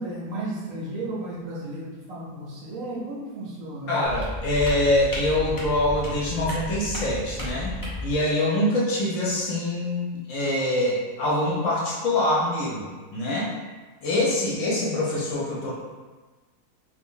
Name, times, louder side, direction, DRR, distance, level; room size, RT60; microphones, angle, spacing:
voice 1, 0.0-4.0, right 1 dB, 65° right, -5 dB, 1.0 m, -34 dB
voice 2, 3.9-13.5 14.0-15.7, left 1 dB, 60° left, -5 dB, 1.0 m, -25 dB
sound 1, 4.0-8.1, equal, 30° left, 0.3 m, -33 dB
2.6 x 2.5 x 3.7 m, 1.3 s
omnidirectional pair, 1.6 m